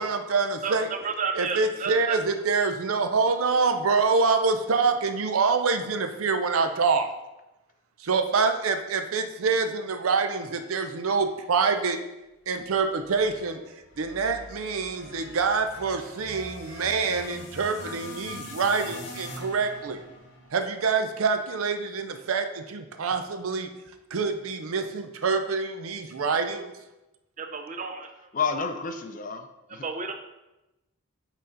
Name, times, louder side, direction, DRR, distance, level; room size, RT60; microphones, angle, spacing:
voice 1, 0.0-0.9 1.4-7.1 8.0-12.0 12.5-13.6 14.0-20.0 20.5-23.7 24.1-26.7, right 4 dB, 80° right, 8 dB, 0.5 m, -26 dB
voice 2, 0.6-2.2 27.4-28.1 29.8-30.1, right 5 dB, 35° right, 6 dB, 0.5 m, -32 dB
sound 1, 13.1-21.4, left 2 dB, 55° left, 0.9 m, -43 dB
voice 3, 28.3-29.9, left 5 dB, 40° left, 7 dB, 0.4 m, -30 dB
6.3 x 4.0 x 3.9 m, 0.98 s
head